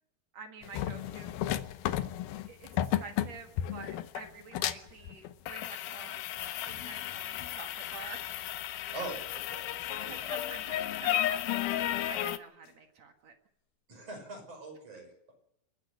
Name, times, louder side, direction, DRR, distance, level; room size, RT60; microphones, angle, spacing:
voice 1, 0.3-1.4 2.4-8.4 10.1-13.3, right 4 dB, 55° right, 5 dB, 2.0 m, -48 dB
sound 1, 0.6-12.4, left 13 dB, 75° left, 2.2 m, -34 dB
sound 2, 5.0-5.1 6.3-6.4 6.7-7.8 9.8-10.0 12.6-12.8, left 8 dB, 60° left, 3.2 m, -52 dB
voice 2, 8.9-10.3 13.9-15.3, right 2 dB, 35° right, 3 dB, 6.7 m, -43 dB
29.0 x 10.0 x 9.7 m, 0.76 s
omnidirectional pair, 5.3 m